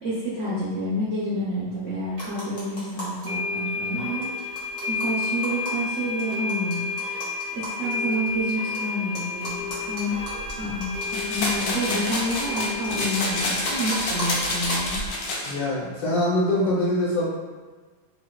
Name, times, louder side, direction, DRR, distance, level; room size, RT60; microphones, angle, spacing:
voice 1, 0.0-4.3 4.9-6.8 7.5-10.2 10.6-15.0, equal, 75° right, -8 dB, 0.7 m, -29 dB
sound 1, 2.1-3.3 3.6-3.7 3.9-4.0 4.2-8.8 9.1-15.1, equal, 45° left, 1.3 m, -37 dB
sound 2, 2.2-2.3 3.2-15.7, left 3 dB, 30° right, 0.6 m, -31 dB
sound 3, 11.1-15.5, left 2 dB, 85° left, 1.5 m, -28 dB
voice 2, 15.5-17.3, left 1 dB, 65° left, -6 dB, 1.4 m, -23 dB
3.3 x 3.1 x 2.2 m, 1.4 s
omnidirectional pair, 2.2 m